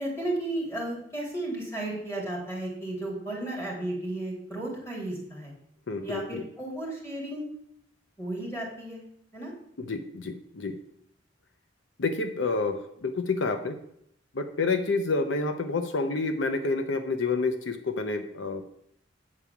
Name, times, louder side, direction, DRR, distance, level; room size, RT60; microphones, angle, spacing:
voice 1, 0.0-5.5 6.0-7.4 8.2-9.0 9.3-9.5, right 1 dB, 15° left, -2 dB, 3.1 m, -34 dB
voice 2, 5.9-6.4 9.8-10.8 12.0-13.8 14.3-18.6, left 3 dB, 75° left, 8 dB, 0.7 m, -29 dB
8.7 x 4.8 x 7.0 m, 0.72 s
head